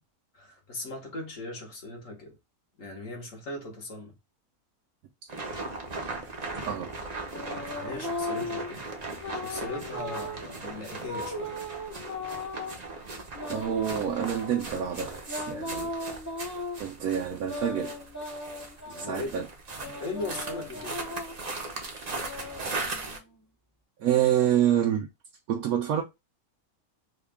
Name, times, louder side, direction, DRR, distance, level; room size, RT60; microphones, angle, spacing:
voice 1, 0.3-2.4 2.8-4.1 7.7-11.5 18.8-19.4 20.0-21.0, left 2 dB, 60° left, 1.6 m, -39 dB
sound 1, 5.3-23.2, right 3 dB, 35° right, 0.7 m, -38 dB
sound 2, 6.4-8.7 9.2-10.4 11.0-12.8 13.3-14.7 15.3-16.8 17.4-19.2 19.8-21.4 22.0-23.4, left 1 dB, 15° left, 0.7 m, -38 dB
voice 2, 6.5-6.9 13.5-15.9 16.8-18.0 19.0-19.5 24.0-25.1 25.5-26.0, right 10 dB, 75° right, 1.1 m, -27 dB
4.0 x 2.3 x 3.4 m
omnidirectional pair, 1.6 m